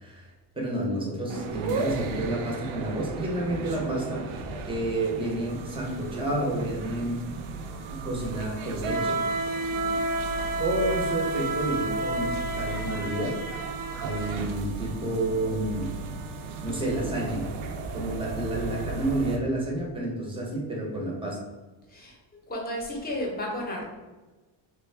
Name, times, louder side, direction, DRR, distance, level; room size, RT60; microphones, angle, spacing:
voice 1, 0.0-4.2 4.7-7.2 7.9-9.2 10.6-13.6 14.0-15.9 16.6-17.5 17.9-21.4, right 1 dB, 10° right, -2 dB, 0.8 m, -30 dB
sound 1, 1.3-19.4, right 3 dB, 80° right, 0.6 m, -32 dB
voice 2, 9.7-10.0 21.9-22.2 22.5-23.8, left 1 dB, 20° left, -2 dB, 0.9 m, -33 dB
3.4 x 2.3 x 3.3 m, 1.2 s
cardioid pair, 125°, 47 cm